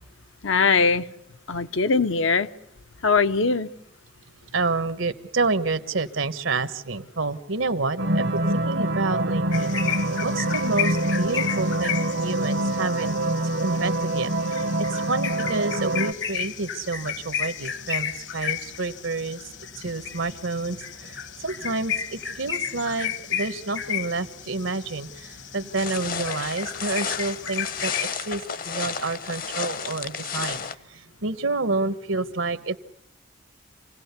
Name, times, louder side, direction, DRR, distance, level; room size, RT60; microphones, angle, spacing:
voice 1, 0.4-1.1 1.5-2.5 3.0-3.7, left 4 dB, 75° left, 10 dB, 0.9 m, -21 dB
voice 2, 4.5-8.3 8.5-9.7 10.2-13.2 13.6-14.3 14.9-19.4 19.8-20.8 21.4-25.1 25.5-27.9 28.3-30.6 31.2-32.8, right 3 dB, 80° right, 11 dB, 1.2 m, -28 dB
sound 1, 8.0-16.1, right 1 dB, 65° right, 0.9 m, -25 dB
sound 2, 9.5-28.1, left 8 dB, 60° left, 1.3 m, -33 dB
sound 3, 25.8-30.7, left 6 dB, 45° left, 0.8 m, -32 dB
28.0 x 17.5 x 8.2 m, 0.80 s
head